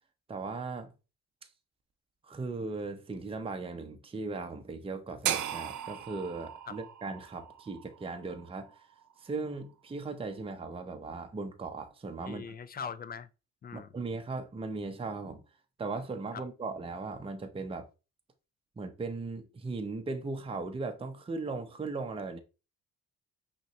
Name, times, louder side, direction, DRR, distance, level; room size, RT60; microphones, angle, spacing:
voice 1, 0.3-0.9 2.2-8.8 9.2-12.6 13.7-15.4 15.8-17.9 18.8-22.4, right 3 dB, 20° right, 0.6 m, -38 dB
sound 1, 5.2-9.4, right 10 dB, 75° right, 0.7 m, -37 dB
voice 2, 12.2-13.3 13.6-13.9 16.3-16.4, left 7 dB, 30° left, 0.4 m, -41 dB
5.4 x 3.1 x 3.0 m
cardioid pair, 90°, 30 cm